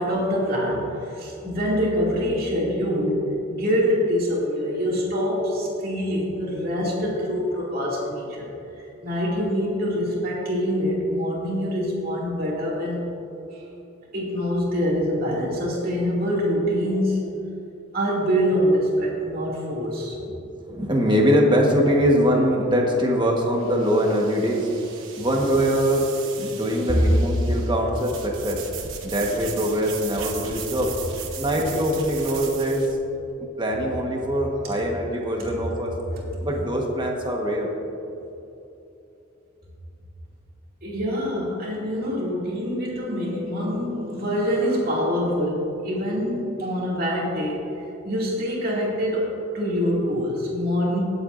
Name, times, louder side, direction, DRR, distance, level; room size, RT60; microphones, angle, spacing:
voice 1, 0.0-8.5 8.8-13.0 13.5-13.6 14.1-17.3 17.9-20.2 40.8-47.6 48.0-49.3 49.5-51.0, equal, 50° right, -4 dB, 2.5 m, -25 dB
voice 2, 20.3-24.7 25.2-26.1 26.4-28.6 29.0-31.0 31.4-33.0 33.6-35.9 36.4-37.7, equal, 25° right, 0 dB, 1.4 m, -22 dB
sound 1, 22.6-32.9, right 6 dB, 80° right, 1.1 m, -38 dB
19.5 x 8.1 x 2.6 m, 2.9 s
head